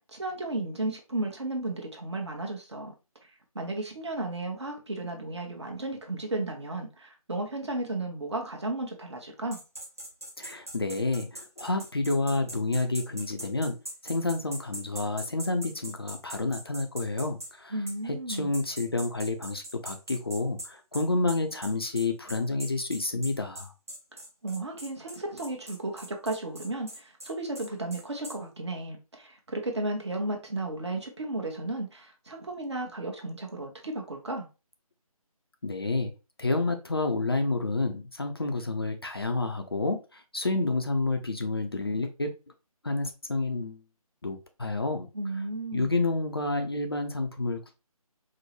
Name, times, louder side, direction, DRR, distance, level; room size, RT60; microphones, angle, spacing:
voice 1, 0.0-2.9 3.5-9.6 17.7-18.5 24.4-34.5 45.1-46.0, right 2 dB, 45° right, 0.9 m, -34 dB
sound 1, 9.5-17.5 17.9-18.0 18.3-28.4, right 1 dB, 25° right, 0.5 m, -41 dB
voice 2, 10.4-13.8 14.0-17.8 18.0-23.7 35.6-36.1 36.4-42.3 42.8-43.8 44.2-45.1 45.7-47.7, left 2 dB, 40° left, 0.4 m, -29 dB
4.5 x 2.0 x 3.0 m
figure-of-eight pair, 155°, 19 cm